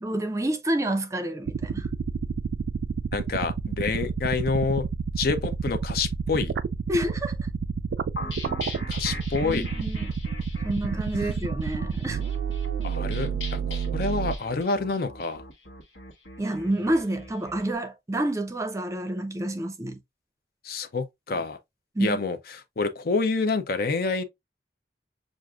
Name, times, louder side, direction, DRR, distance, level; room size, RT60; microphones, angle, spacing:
voice 1, 0.0-1.9 6.9-7.4 9.4-10.1 10.6-12.2 16.4-20.0 21.4-21.5 21.9-22.2, right 1 dB, 20° right, 0.5 m, -28 dB
sound 1, 1.5-14.4, right 6 dB, 70° right, 0.3 m, -29 dB
voice 2, 3.1-4.9 5.2-6.5 8.9-9.7 12.8-15.4 20.6-21.6 22.0-22.4 22.8-24.2, left 4 dB, 55° left, 0.6 m, -27 dB
sound 2, 8.2-17.6, left 2 dB, 85° left, 1.2 m, -41 dB
6.2 x 2.5 x 2.3 m
head